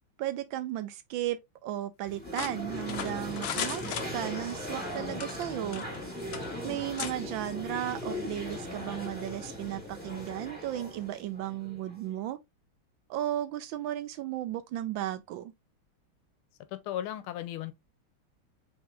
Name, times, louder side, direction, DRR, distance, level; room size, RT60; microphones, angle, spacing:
voice 1, 0.2-3.8 4.1-5.8 6.6-12.4 13.1-15.5, right 13 dB, 75° right, 1.3 m, -35 dB
sound 1, 2.1-12.1, left 1 dB, 5° left, 1.9 m, -39 dB
sound 2, 2.3-4.6 5.1-6.0 6.3-6.5 7.0-7.1, left 8 dB, 70° left, 0.9 m, -36 dB
voice 2, 16.7-17.7, left 12 dB, 90° left, 1.5 m, -35 dB
4.7 x 3.6 x 2.5 m
omnidirectional pair, 2.3 m